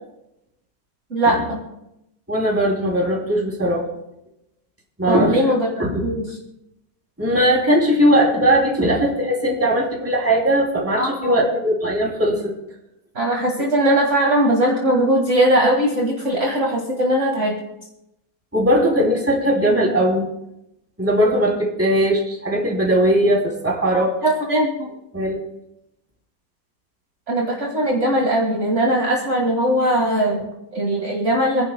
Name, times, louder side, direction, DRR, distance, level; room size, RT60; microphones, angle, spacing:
voice 1, 1.1-1.6 5.1-5.7 6.0-6.3 11.0-11.4 13.2-17.6 23.9-24.9 27.3-31.7, right 1 dB, 35° right, -2 dB, 2.0 m, -20 dB
voice 2, 2.3-3.9 5.0-5.4 5.8-6.1 7.2-12.5 18.5-20.3 21.0-24.1 25.1-25.4, equal, 5° right, -2 dB, 2.6 m, -19 dB
28.0 x 11.0 x 2.2 m, 0.86 s
omnidirectional pair, 2.2 m